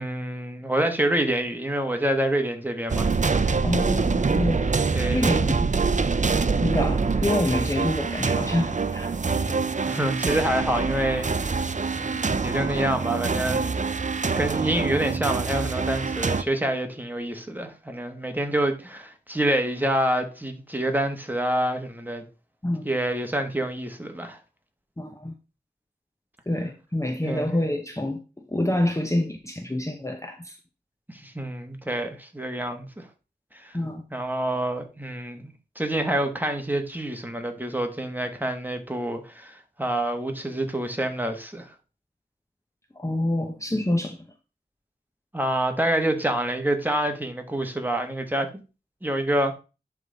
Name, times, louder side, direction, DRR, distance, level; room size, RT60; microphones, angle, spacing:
voice 1, 0.0-3.6 4.9-5.3 9.8-11.6 11.9-13.8 14.4-22.2 22.8-24.4 27.2-27.5 31.1-33.1 33.5-33.8 34.1-41.7 45.3-48.5 49.0-49.5, right 1 dB, 10° right, 1.4 m, -27 dB
sound 1, 2.9-16.4, right 4 dB, 45° right, 0.5 m, -25 dB
voice 2, 3.6-4.7 5.1-5.7 6.6-9.2 22.6-22.9 25.0-25.3 26.5-28.2 28.5-30.6 33.7-34.0 43.0-44.2, left 1 dB, 15° left, 0.7 m, -27 dB
10.5 x 3.6 x 3.9 m
wide cardioid pair, 50°, 17 cm